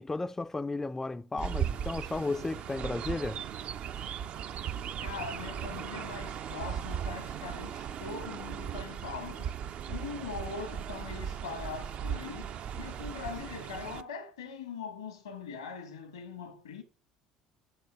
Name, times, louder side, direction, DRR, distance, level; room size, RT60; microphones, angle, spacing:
voice 1, 0.0-3.4, left 3 dB, 15° left, 0.3 m, -34 dB
Chirp tweet, 1.4-14.0, right 8 dB, 50° right, 0.5 m, -37 dB
voice 2, 5.0-9.5 9.9-16.8, left 5 dB, 85° left, 1.1 m, -41 dB
6.5 x 6.4 x 6.1 m
figure-of-eight pair, 60°, 3 cm